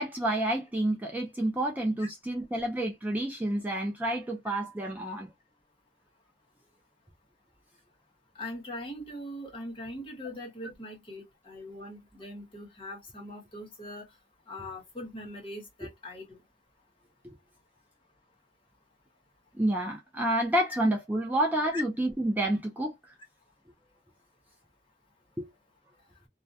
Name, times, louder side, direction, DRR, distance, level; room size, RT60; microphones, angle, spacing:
voice 1, 0.0-5.3 19.6-22.9 25.4-25.5, right 1 dB, 10° right, 0.4 m, -29 dB
voice 2, 8.3-14.1 14.5-16.4 21.7-21.8, left 1 dB, 30° left, 1.0 m, -41 dB
2.2 x 2.1 x 2.6 m
head